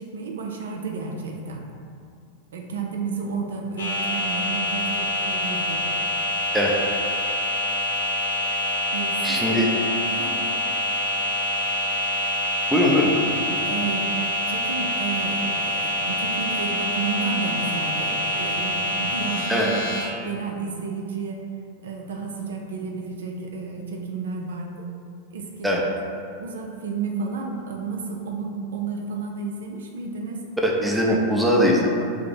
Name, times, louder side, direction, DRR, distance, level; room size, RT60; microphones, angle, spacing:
voice 1, 0.0-1.6 2.5-5.8 8.9-9.6 10.1-10.5 13.5-19.8 20.2-21.4 21.8-24.7 25.3-25.7 26.4-30.4, right 4 dB, 65° right, 1 dB, 0.4 m, -31 dB
sound 1, 3.8-20.0, equal, 65° left, 1.1 m, -26 dB
voice 2, 9.2-9.7 12.7-13.2 19.5-19.7 25.6-25.8 30.6-32.0, equal, 5° right, -2 dB, 0.5 m, -20 dB
3.5 x 2.7 x 3.9 m, 2.4 s
figure-of-eight pair, 90°, 0 cm